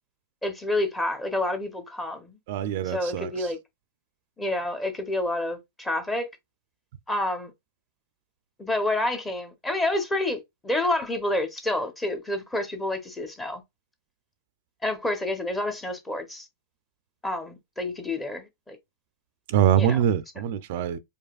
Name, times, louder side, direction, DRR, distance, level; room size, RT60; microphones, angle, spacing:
voice 1, 0.4-2.4 2.8-3.6 4.4-6.3 7.1-7.5 8.6-13.6 14.8-16.5 17.2-18.8 19.8-20.0, left 1 dB, 10° left, 0.9 m, -28 dB
voice 2, 2.5-3.5 19.5-21.0, right 10 dB, 60° right, 0.4 m, -24 dB
4.9 x 2.4 x 2.4 m
hypercardioid pair, 140°, 0 cm